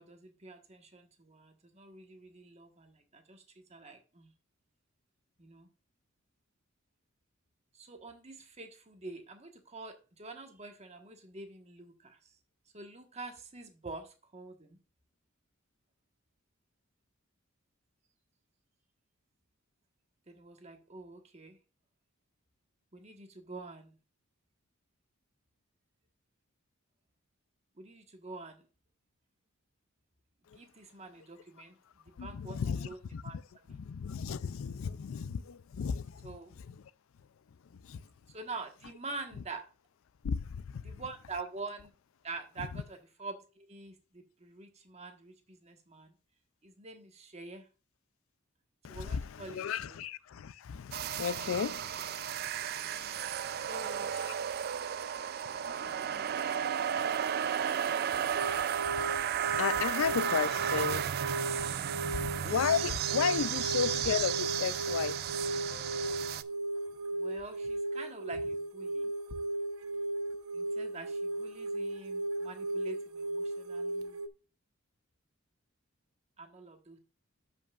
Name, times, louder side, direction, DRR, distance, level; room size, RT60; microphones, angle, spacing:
voice 1, 0.0-3.4 3.7-4.3 5.4-5.7 7.7-12.3 12.7-14.8 20.3-21.6 22.9-24.0 27.8-28.6 30.5-31.8 32.0-33.0 33.2-33.4 33.7-33.8 36.2-36.5 38.3-39.7 40.8-41.9 42.2-46.1 46.6-47.7 48.9-50.0 53.5-54.1 67.1-69.1 70.5-74.2 76.4-77.0, right 3 dB, 30° right, 1.3 m, -46 dB
voice 2, 32.2-33.4 33.7-36.8 37.7-38.1 40.2-41.0 42.6-42.7 48.8-54.3 55.0-57.3 58.2-58.6 58.8-61.3 61.6-65.2 65.7-66.3 69.3-69.4, left 7 dB, 70° left, 0.4 m, -36 dB
sound 1, 50.9-66.4, right 9 dB, 45° right, 0.3 m, -34 dB
sound 2, 58.4-74.3, right 2 dB, 90° right, 0.8 m, -36 dB
12.5 x 5.5 x 2.4 m
head